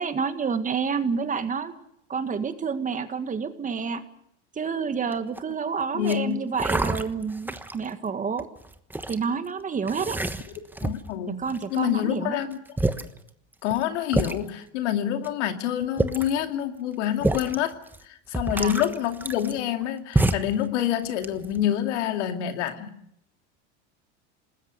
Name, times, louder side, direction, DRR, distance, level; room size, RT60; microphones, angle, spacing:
voice 1, 0.0-1.8 2.1-4.0 4.6-8.5 9.1-10.2 11.4-12.4 18.5-18.7, right 5 dB, 20° right, 10 dB, 1.8 m, -29 dB
sound 1, 5.1-5.5 6.0-6.2 6.6-7.9 8.4-9.2 9.9-11.1 11.5-12.0 12.5-12.6 12.8-13.1 13.7-13.8 14.1-14.4 15.2-15.3 15.8-16.4 17.2-17.6 17.9-18.0 18.3-19.8 20.1-20.6 21.0-21.6, right 2 dB, 5° right, 1.2 m, -27 dB
voice 2, 5.9-6.4 10.8-11.4 11.7-12.6 13.6-17.8 18.0-22.9, left 11 dB, 80° left, 7 dB, 2.5 m, -27 dB
28.0 x 20.0 x 6.7 m, 0.73 s
supercardioid pair, 120°, 36 cm